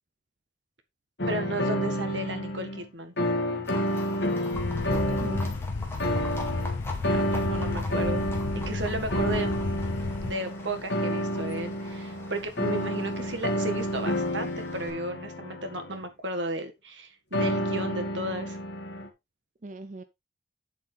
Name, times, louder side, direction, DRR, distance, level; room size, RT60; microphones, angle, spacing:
sound 1, 1.2-2.8 3.2-5.6 6.0-16.0 17.3-19.1, equal, 65° left, 2.1 m, -30 dB
voice 1, 1.3-3.1 7.1-8.3 8.7-9.6 10.2-18.6, right 1 dB, 75° right, 1.8 m, -34 dB
Livestock farm animals working animals, 3.6-14.9, left 2 dB, 15° left, 2.2 m, -44 dB
sound 2, 4.5-10.3, left 3 dB, 85° left, 0.6 m, -32 dB
voice 2, 4.5-5.4 19.6-20.0, right 2 dB, 40° right, 0.5 m, -40 dB
8.6 x 7.5 x 3.4 m
head